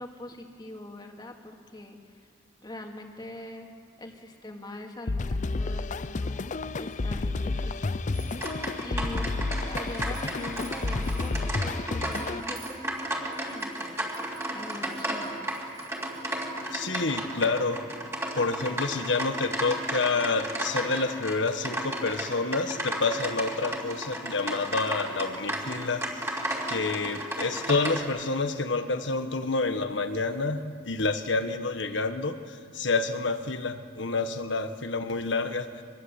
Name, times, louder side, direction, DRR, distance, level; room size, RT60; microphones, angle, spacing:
voice 1, 0.0-2.3 2.6-3.7 4.0-6.5 6.8-8.0 8.8-9.3 9.6-14.1 14.5-15.5, left 1 dB, 25° left, 2 dB, 2.3 m, -42 dB
sound 1, 5.1-12.4, left 3 dB, 40° left, 0.6 m, -31 dB
sound 2, 6.5-7.0 7.6-8.8 9.7-16.8, right 7 dB, 80° right, 4.5 m, -53 dB
sound 3, 8.4-28.0, right 1 dB, 15° right, 3.2 m, -34 dB
voice 2, 16.7-17.8 18.3-26.3 26.7-35.8, left 3 dB, 75° left, 8 dB, 1.4 m, -28 dB
24.0 x 21.0 x 8.2 m, 2.1 s
head